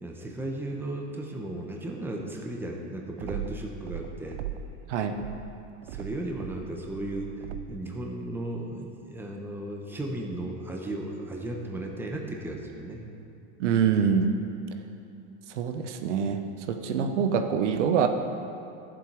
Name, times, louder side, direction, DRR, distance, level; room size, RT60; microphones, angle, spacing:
voice 1, 0.0-4.4 5.9-7.3 7.7-13.0, right 1 dB, 5° right, 0 dB, 1.0 m, -35 dB
sound 1, 3.2-4.8 5.1-7.9, right 10 dB, 70° right, 0.6 m, -39 dB
voice 2, 13.6-14.3 15.5-18.1, right 7 dB, 85° right, 6 dB, 1.0 m, -25 dB
13.0 x 7.5 x 4.8 m, 2.7 s
supercardioid pair, 140°, 35 cm